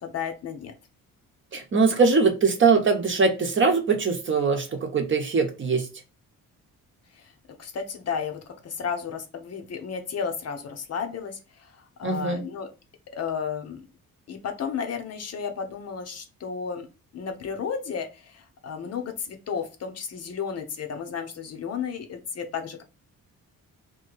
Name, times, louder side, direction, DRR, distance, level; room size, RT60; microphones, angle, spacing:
voice 1, 0.0-0.7 7.1-7.3 7.6-12.7 13.1-13.8 14.3-16.9 17.1-22.8, left 6 dB, 50° left, 5 dB, 0.7 m, -33 dB
voice 2, 1.5-5.9 12.0-12.4, right 4 dB, 35° right, 4 dB, 0.8 m, -22 dB
3.0 x 2.7 x 3.9 m, 0.30 s
cardioid pair, 125°, 33 cm